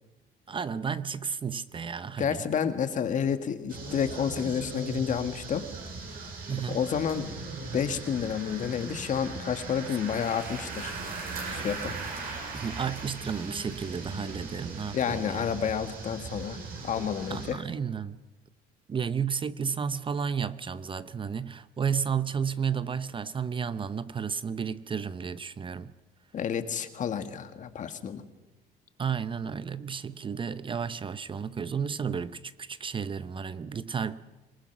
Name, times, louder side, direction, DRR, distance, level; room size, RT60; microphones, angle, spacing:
voice 1, 0.5-2.4 6.5-6.8 11.4-11.8 12.5-15.5 17.3-18.2 18.9-25.9 29.0-34.2, right 6 dB, 30° right, 0.7 m, -32 dB
voice 2, 2.2-5.6 6.7-7.4 7.7-10.9 11.5-12.0 14.9-16.6 16.8-17.6 26.3-28.2, left 7 dB, 50° left, 1.8 m, -30 dB
sound 1, 3.7-17.5, right 3 dB, 60° right, 7.2 m, -39 dB
26.0 x 19.0 x 6.0 m
cardioid pair, 110°, 17 cm